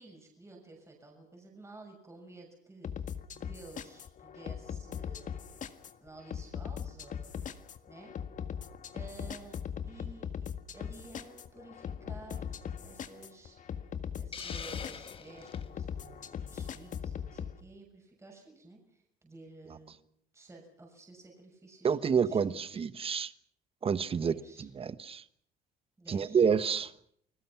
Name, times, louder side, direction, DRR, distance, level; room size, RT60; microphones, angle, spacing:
voice 1, 0.0-5.6 6.0-7.5 7.9-8.1 8.9-9.6 9.8-13.6 14.2-20.0 20.3-22.8 24.2-24.7 26.0-26.4, right 2 dB, 15° right, 6.7 m, -53 dB
sound 1, 2.8-17.5, left 8 dB, 50° left, 1.7 m, -40 dB
Hiss, 14.3-15.7, left 6 dB, 35° left, 1.4 m, -43 dB
voice 2, 21.8-23.3 23.8-24.3 24.8-25.2 26.1-26.9, right 6 dB, 35° right, 1.2 m, -28 dB
29.5 x 20.0 x 6.0 m
cardioid pair, 110°, 17 cm